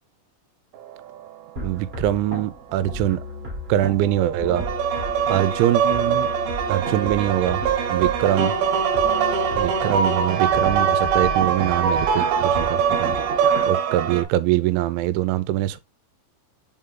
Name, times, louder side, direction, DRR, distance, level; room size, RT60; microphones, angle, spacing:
sound 1, 1.6-13.7, equal, 25° right, 1.2 m, -34 dB
voice 1, 1.6-3.2 3.7-4.7 5.3-6.3 6.7-7.6 7.9-8.5 9.6-13.2 13.7-15.8, right 13 dB, 90° right, 3.0 m, -23 dB
sound 2, 4.0-14.2, right 7 dB, 70° right, 2.4 m, -22 dB
5.6 x 5.2 x 3.7 m
omnidirectional pair, 5.3 m